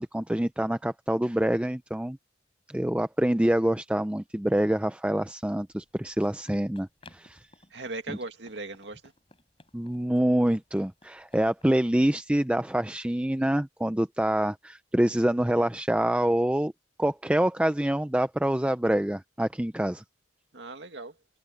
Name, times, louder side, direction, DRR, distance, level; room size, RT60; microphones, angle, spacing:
voice 1, 0.0-2.2 2.7-7.4 9.7-16.7 17.0-20.0, right 1 dB, 5° right, 0.4 m, -26 dB
Run, 5.6-11.8, left 3 dB, 30° left, 6.0 m, -58 dB
voice 2, 7.7-9.1 20.5-21.2, right 2 dB, 70° right, 2.2 m, -38 dB
head